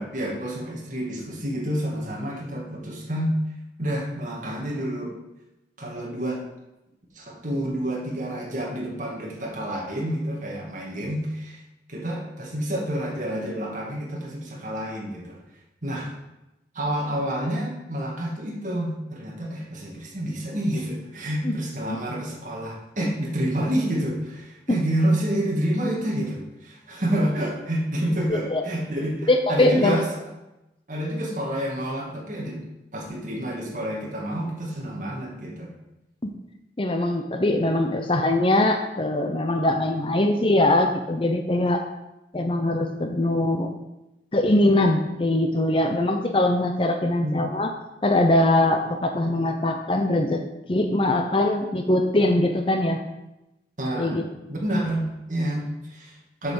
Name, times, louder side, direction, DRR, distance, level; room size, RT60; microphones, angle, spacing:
voice 1, 0.0-3.4 3.8-5.2 5.8-6.4 7.1-11.6 11.9-15.4 15.8-16.1 16.7-30.1 30.9-32.6 32.9-35.7 47.2-47.4 53.8-54.2 54.5-56.5, right 1 dB, 45° right, -2 dB, 2.3 m, -28 dB
voice 2, 28.3-28.6 29.3-29.9 36.2-36.3 36.8-41.9 42.3-43.7 44.3-47.7 48.0-50.4 50.7-53.0 53.9-54.2, left 1 dB, 30° left, 5 dB, 0.7 m, -22 dB
7.8 x 5.8 x 7.0 m, 0.95 s
head